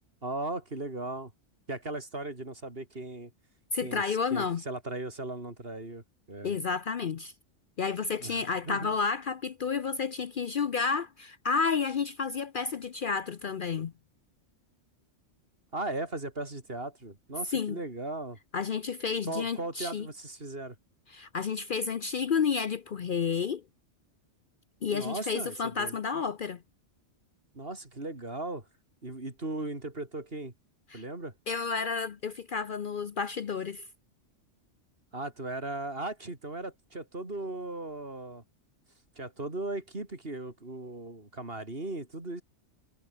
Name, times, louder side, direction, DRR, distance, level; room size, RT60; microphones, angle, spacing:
voice 1, 0.2-1.3 1.7-3.3 3.8-6.6 8.2-8.9 15.7-18.4 19.3-20.8 24.9-26.0 27.5-28.7 29.0-30.5 30.9-31.3 35.1-38.4 39.2-42.4, right 2 dB, 50° right, 4.2 m, -37 dB
voice 2, 3.7-4.6 6.4-7.3 7.8-13.9 17.5-17.8 18.5-20.1 21.1-23.6 24.8-26.6 30.9-31.0 31.5-33.8, left 5 dB, 50° left, 0.8 m, -31 dB
omnidirectional pair, 1.2 m